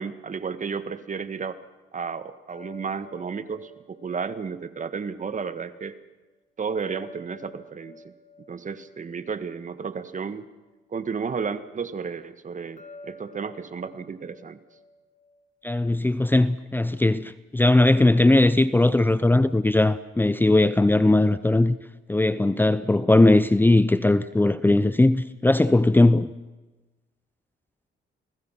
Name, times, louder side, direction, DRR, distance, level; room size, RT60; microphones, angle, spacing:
voice 1, 0.0-1.6 1.9-6.0 6.6-8.1 8.5-10.5 10.9-14.6, right 5 dB, 40° right, 1.7 m, -32 dB
sound 1, 2.5-5.6 6.8-10.3 12.8-15.9, left 2 dB, 40° left, 2.5 m, -50 dB
voice 2, 15.6-21.8 22.1-26.3, left 2 dB, 10° left, 0.7 m, -19 dB
30.0 x 20.0 x 5.9 m
cardioid pair, 90°, 20 cm